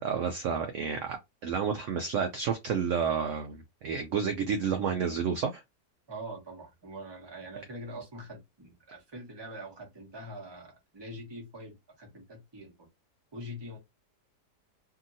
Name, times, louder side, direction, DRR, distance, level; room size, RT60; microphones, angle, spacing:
voice 1, 0.0-5.6, right 6 dB, 70° right, 0.7 m, -30 dB
voice 2, 6.1-12.9 13.3-13.8, right 1 dB, 20° right, 0.9 m, -44 dB
2.8 x 2.8 x 2.6 m
omnidirectional pair, 1.8 m